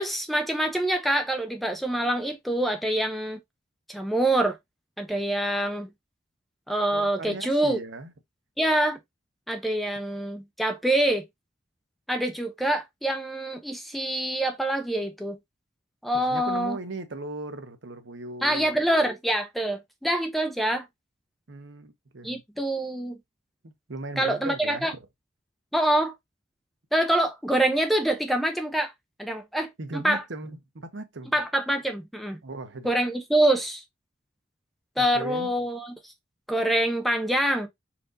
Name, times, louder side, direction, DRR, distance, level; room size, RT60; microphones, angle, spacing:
voice 1, 0.0-3.4 3.9-4.6 5.0-5.9 6.7-7.8 8.6-9.0 9.5-11.3 12.1-15.4 16.0-16.8 18.4-20.8 22.2-23.1 24.2-24.9 25.7-26.1 26.9-28.9 29.2-30.2 31.3-32.4 32.8-33.8 35.0-36.1 36.5-37.7, right 1 dB, ahead, 0.6 m, -25 dB
voice 2, 6.9-8.1 16.1-18.7 21.5-22.4 23.6-25.0 29.8-31.3 32.4-32.9 35.0-35.5, right 2 dB, 85° right, 0.9 m, -38 dB
4.4 x 2.6 x 3.8 m
head